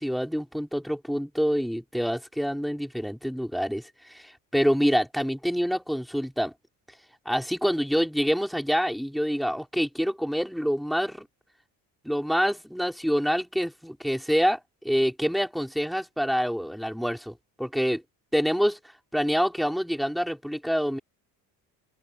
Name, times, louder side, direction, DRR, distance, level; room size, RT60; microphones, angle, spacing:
voice 1, 0.0-6.5 7.3-11.3 12.0-14.6 14.8-18.0 18.3-18.8 19.1-21.0, equal, ahead, 5.7 m, -26 dB
open air
supercardioid pair, 85°, 41 cm